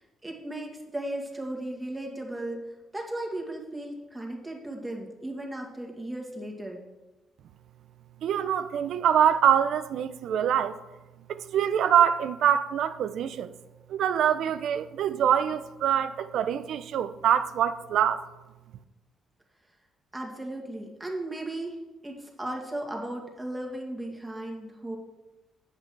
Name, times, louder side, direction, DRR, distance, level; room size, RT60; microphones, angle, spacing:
voice 1, 0.0-2.6 2.9-6.8 20.1-25.0, right 1 dB, 15° right, 2.0 m, -36 dB
voice 2, 8.2-10.8 11.3-13.5 13.9-18.2, right 9 dB, 75° right, 0.5 m, -24 dB
8.0 x 7.7 x 4.6 m
cardioid pair, 90°, 0 cm